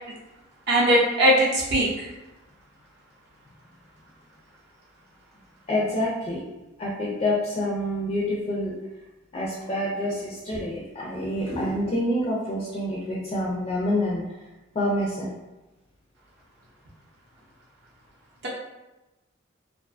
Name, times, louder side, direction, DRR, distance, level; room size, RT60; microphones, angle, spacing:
voice 1, 0.7-2.1, right 1 dB, 55° right, -6 dB, 0.6 m, -20 dB
voice 2, 5.7-6.4 6.8-8.7 9.3-14.2 14.7-15.3, left 1 dB, 30° left, -4 dB, 0.4 m, -27 dB
2.4 x 2.3 x 2.3 m, 1.0 s
head